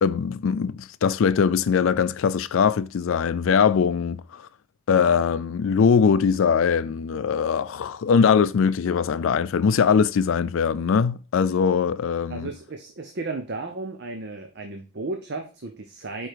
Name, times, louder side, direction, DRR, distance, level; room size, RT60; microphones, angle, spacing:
voice 1, 0.0-4.5 4.9-12.5, left 6 dB, 70° left, 0.4 m, -21 dB
voice 2, 12.3-16.3, right 3 dB, 50° right, 0.7 m, -34 dB
5.0 x 4.4 x 4.6 m
head